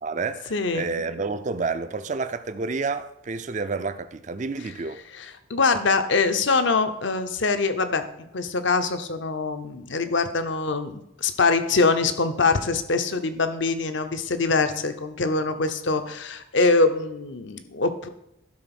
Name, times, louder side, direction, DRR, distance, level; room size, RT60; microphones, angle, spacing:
voice 1, 0.0-5.0, right 4 dB, 35° right, 0.4 m, -29 dB
voice 2, 0.5-1.0 5.1-8.0 8.3-18.1, left 3 dB, 60° left, 0.8 m, -24 dB
11.5 x 4.0 x 6.0 m
head